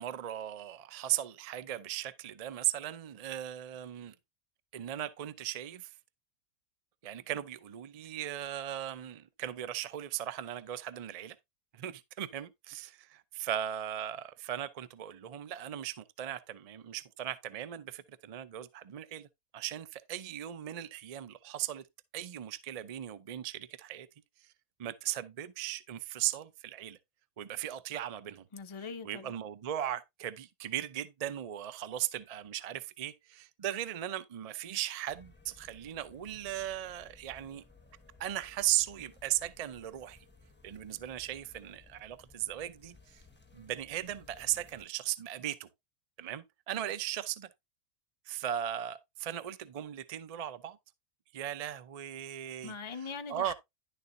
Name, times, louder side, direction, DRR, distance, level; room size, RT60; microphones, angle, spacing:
voice 1, 0.0-4.1 4.7-5.9 7.0-11.4 11.7-19.3 19.5-21.8 22.1-24.1 24.4-24.5 24.8-27.0 27.4-28.5 29.0-37.6 38.2-40.2 40.6-43.2 43.5-45.7 46.2-47.5 48.3-50.8 51.3-52.8 53.3-53.5, right 12 dB, 65° right, 0.3 m, -37 dB
voice 2, 28.5-29.3 52.6-53.5, left 5 dB, 55° left, 0.3 m, -41 dB
sound 1, 35.1-44.8, left 3 dB, 10° left, 0.8 m, -59 dB
11.0 x 6.8 x 2.6 m
omnidirectional pair, 1.6 m